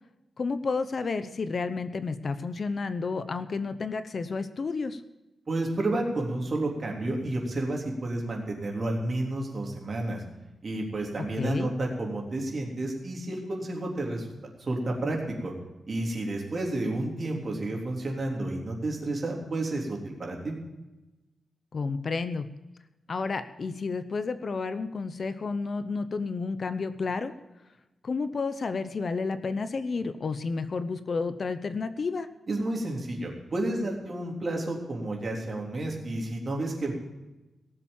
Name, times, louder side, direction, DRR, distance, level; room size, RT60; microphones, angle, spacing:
voice 1, 0.4-5.0 11.4-11.7 21.7-22.5 23.1-27.3 28.0-32.3, left 4 dB, 45° left, 11 dB, 0.7 m, -31 dB
voice 2, 5.5-10.2 10.6-14.3 14.6-15.5 15.9-20.5 32.5-36.9, right 2 dB, 40° right, 0 dB, 3.5 m, -31 dB
18.0 x 7.3 x 7.2 m, 1.0 s
wide cardioid pair, 135°, 0 cm